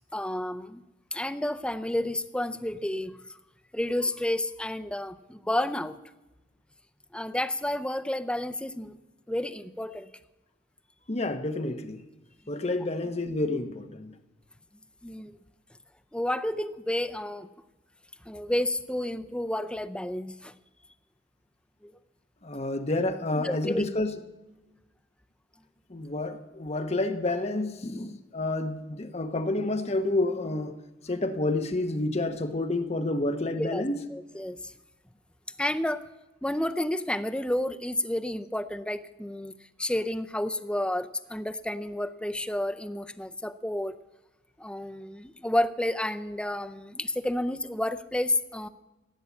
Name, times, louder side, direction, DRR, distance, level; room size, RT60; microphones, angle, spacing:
voice 1, 0.1-0.8 1.1-3.2 3.7-6.0 7.1-9.0 9.3-10.1 15.0-15.4 16.1-17.5 18.3-20.5 21.8-21.9 23.3-23.8 33.6-33.8 34.1-34.7 35.6-36.1 36.4-39.5 39.8-44.0 44.6-48.7, left 1 dB, 5° left, 0.5 m, -30 dB
voice 2, 11.1-12.0 12.5-14.1 22.4-24.2 25.9-30.8 31.0-34.0, left 2 dB, 30° left, 0.9 m, -29 dB
15.5 x 8.6 x 8.3 m
head